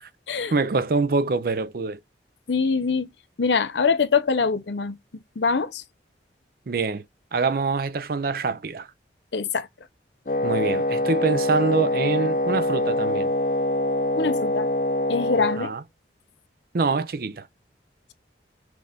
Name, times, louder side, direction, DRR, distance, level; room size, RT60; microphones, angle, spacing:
voice 1, 0.5-2.0 6.7-7.0 7.3-8.9 10.4-13.3 15.6-15.8 16.7-17.5, right 4 dB, 55° right, 0.5 m, -25 dB
voice 2, 2.5-3.1 3.4-4.9 5.4-5.8 9.3-9.7 14.2-14.7 15.1-15.7, left 5 dB, 85° left, 0.7 m, -23 dB
Wind instrument woodwind instrument, 10.3-15.6, left 1 dB, 45° left, 0.6 m, -24 dB
6.0 x 2.6 x 3.4 m
head